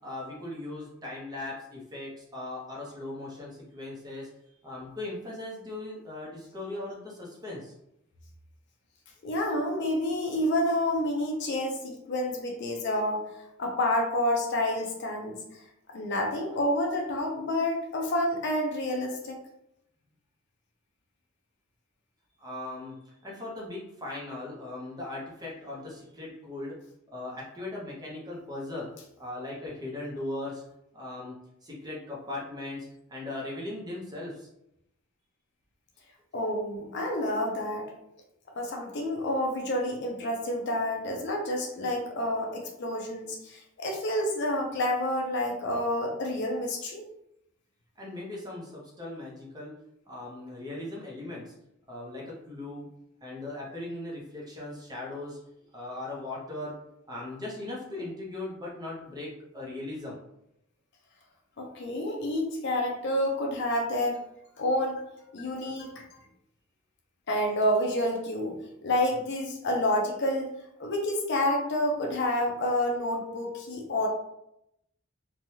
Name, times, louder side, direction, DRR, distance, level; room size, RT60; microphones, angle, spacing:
voice 1, 0.0-4.3 4.6-7.7 22.4-26.7 27.1-28.9 29.2-30.6 30.9-31.4 31.6-34.5 48.0-49.7 50.1-51.5 51.9-52.9 53.2-55.4 55.7-56.7 57.1-59.3 59.5-60.2, left 2 dB, 20° right, -3 dB, 0.7 m, -38 dB
voice 2, 9.2-13.2 13.6-15.6 15.9-19.4 36.3-37.9 38.6-47.0 61.6-64.2 64.6-65.0 65.3-66.0 67.3-70.5 70.8-74.1, left 1 dB, 55° left, 1 dB, 0.5 m, -29 dB
3.1 x 2.2 x 2.7 m, 0.80 s
head